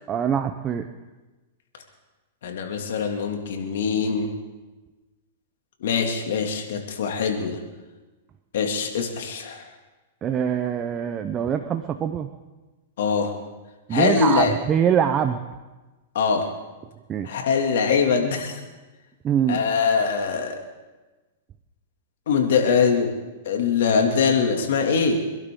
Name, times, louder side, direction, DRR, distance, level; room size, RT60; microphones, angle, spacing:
voice 1, 0.1-0.9 10.2-12.3 13.9-15.4 17.1-17.3 19.2-19.6, right 8 dB, 25° right, 7 dB, 0.8 m, -23 dB
voice 2, 2.4-4.3 5.8-7.6 8.5-9.6 13.0-13.3 13.9-14.5 16.1-16.5 17.2-18.6 19.5-20.6 22.3-23.1 23.5-25.2, left 5 dB, 70° left, 2 dB, 2.6 m, -22 dB
25.5 x 12.0 x 3.9 m, 1.2 s
hypercardioid pair, 135°, 0 cm